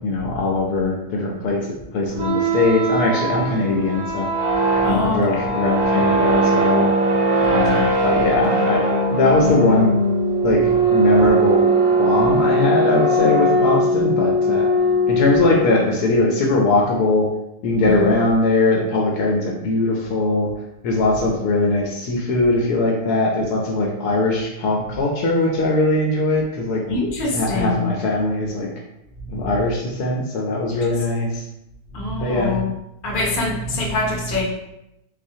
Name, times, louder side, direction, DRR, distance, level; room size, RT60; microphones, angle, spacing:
voice 1, 0.0-4.3 4.8-6.9 7.4-8.8 9.1-9.9 10.4-11.7 12.0-14.7 15.1-17.3 17.6-20.5 20.8-26.8 27.3-28.7 29.3-31.4 32.2-32.5, left 2 dB, 70° left, -1 dB, 1.1 m, -20 dB
sound 1, 2.1-15.9, right 1 dB, 65° right, 1.0 m, -19 dB
voice 2, 4.7-5.4 7.4-7.9 17.8-18.2 26.9-27.9 29.2-29.5 31.9-32.7 33.0-34.4, left 2 dB, 45° left, -3 dB, 0.7 m, -25 dB
4.0 x 2.4 x 2.7 m, 0.87 s
omnidirectional pair, 1.9 m